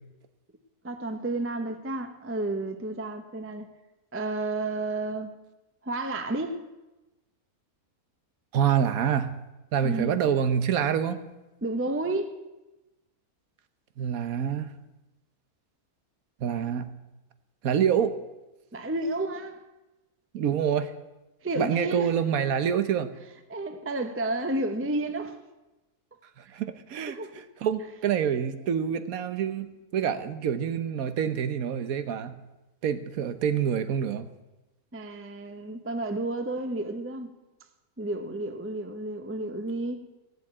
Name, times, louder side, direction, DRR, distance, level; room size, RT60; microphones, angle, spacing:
voice 1, 0.8-3.7 4.1-5.4 5.8-6.6 9.8-10.2 11.6-12.3 18.7-19.6 21.4-22.1 23.5-25.4 26.4-26.5 27.1-27.5 34.9-37.3 38.0-40.0, right 2 dB, 10° right, 0.6 m, -31 dB
voice 2, 8.5-9.3 9.7-11.2 14.0-14.7 16.4-16.9 17.6-18.1 20.3-20.9 21.6-23.1 26.5-27.2 27.6-32.4 32.8-34.3, right 8 dB, 65° right, 1.3 m, -26 dB
16.0 x 7.5 x 8.7 m
omnidirectional pair, 1.7 m